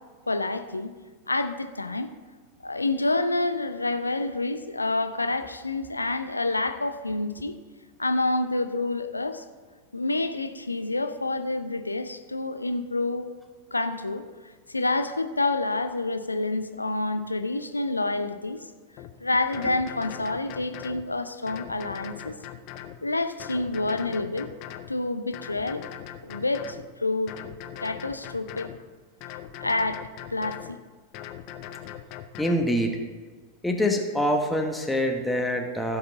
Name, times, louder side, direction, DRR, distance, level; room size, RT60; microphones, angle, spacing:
voice 1, 0.3-0.9 1.3-2.1 2.6-7.5 8.0-9.4 9.9-13.3 13.7-14.2 14.7-18.7 19.2-22.3 23.0-24.5 24.9-25.9 26.2-27.3 27.8-28.7 29.6-30.0 30.3-30.8, left 2 dB, 80° left, 9 dB, 0.6 m, -28 dB
sound 1, 19.0-19.1 19.5-21.0 21.5-23.0 23.4-24.9 25.3-26.9 27.3-28.8 29.2-30.7 31.1-32.7, left 11 dB, 40° left, 0.6 m, -40 dB
voice 2, 32.4-33.0 33.6-36.0, equal, 5° left, 2 dB, 1.2 m, -25 dB
16.0 x 5.8 x 3.9 m, 1.4 s
figure-of-eight pair, 90°, 0 cm